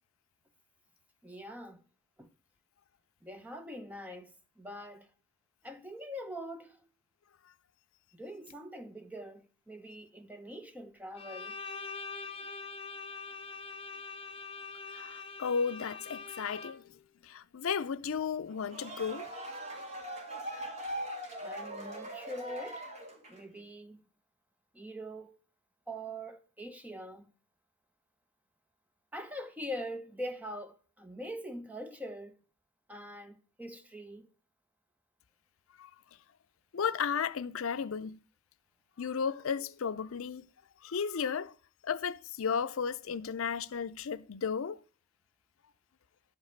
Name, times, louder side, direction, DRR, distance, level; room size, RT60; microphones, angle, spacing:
voice 1, 1.2-1.8 2.2-2.3 3.2-5.1 5.6-6.8 8.1-11.5 21.4-22.9 23.3-24.0 24.7-25.3 25.9-27.3 29.1-32.3 32.9-34.3, equal, 5° right, 0.8 m, -43 dB
Bowed string instrument, 11.2-17.0, left 4 dB, 25° left, 0.9 m, -44 dB
voice 2, 14.9-16.8 17.2-19.3 35.8-35.9 36.7-38.2 39.0-40.4 40.8-41.5 41.8-44.8, left 6 dB, 70° left, 0.5 m, -34 dB
sound 1, 18.5-23.5, right 1 dB, 30° right, 2.0 m, -41 dB
11.5 x 5.3 x 6.4 m
head